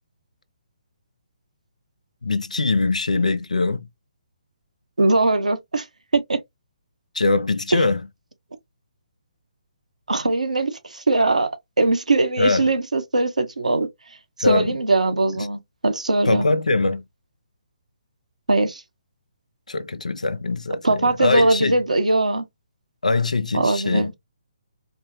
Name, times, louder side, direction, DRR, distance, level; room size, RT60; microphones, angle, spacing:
voice 1, 2.2-3.8 7.1-8.0 12.4-12.7 14.4-14.7 15.4-15.5 16.2-17.0 19.7-21.8 23.0-24.1, left 3 dB, 85° left, 0.5 m, -22 dB
voice 2, 5.0-5.9 6.1-6.4 7.7-7.8 10.1-11.5 11.8-13.9 14.4-16.5 18.5-18.8 20.8-22.4 23.5-24.1, right 2 dB, 85° right, 0.9 m, -20 dB
4.2 x 2.0 x 2.7 m
figure-of-eight pair, 140°, 4 cm